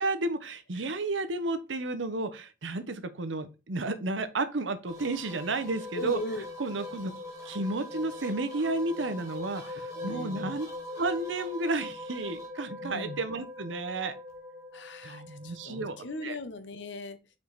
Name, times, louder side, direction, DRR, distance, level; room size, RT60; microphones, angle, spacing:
voice 1, 0.0-6.2 6.6-7.1 7.4-10.7 11.0-14.1 15.0-16.4, right 2 dB, 85° right, 0.8 m, -32 dB
sound 1, 4.9-16.2, left 1 dB, 15° right, 1.7 m, -42 dB
voice 2, 5.9-6.4 9.9-10.5 12.8-13.2 14.7-17.2, left 2 dB, 75° left, 0.9 m, -39 dB
5.3 x 4.6 x 4.0 m
head